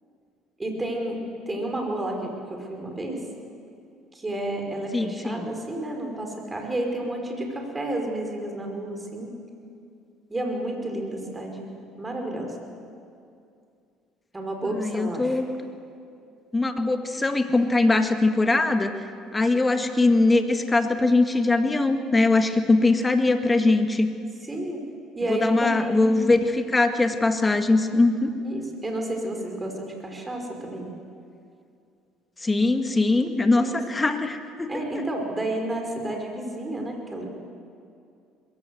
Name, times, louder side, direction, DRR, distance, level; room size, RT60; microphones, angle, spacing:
voice 1, 0.6-1.2 1.5-3.2 4.1-9.3 10.3-12.6 14.3-15.4 24.4-24.8 25.1-26.3 28.4-30.9 33.5-33.8 34.7-37.3, right 1 dB, 20° right, 2 dB, 5.2 m, -31 dB
voice 2, 4.9-5.5 14.7-15.5 16.5-18.9 19.3-24.1 25.3-28.3 32.4-35.0, left 2 dB, 20° left, 7 dB, 1.8 m, -21 dB
21.5 x 16.5 x 7.9 m, 2.4 s
hypercardioid pair, 70°, 0 cm